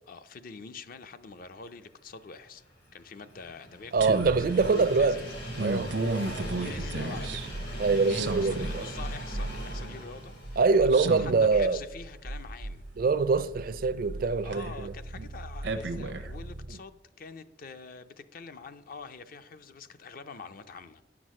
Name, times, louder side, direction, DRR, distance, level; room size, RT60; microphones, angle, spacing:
voice 1, 0.1-2.6 2.9-4.3 4.7-5.3 6.4-7.6 8.0-10.9 11.2-12.9 14.4-21.0, left 5 dB, 55° left, 0.5 m, -45 dB
Train, 2.3-12.4 12.8-12.9 14.0-14.1, equal, 90° left, 3.3 m, -41 dB
voice 2, 3.9-5.2 5.6-6.0 7.8-8.9 10.6-11.8 13.0-14.9 15.2-15.3 16.7-16.8, right 4 dB, 55° right, 0.4 m, -24 dB
sound 1, 4.0-16.7, right 2 dB, 90° right, 0.8 m, -35 dB
9.8 x 6.1 x 6.2 m
head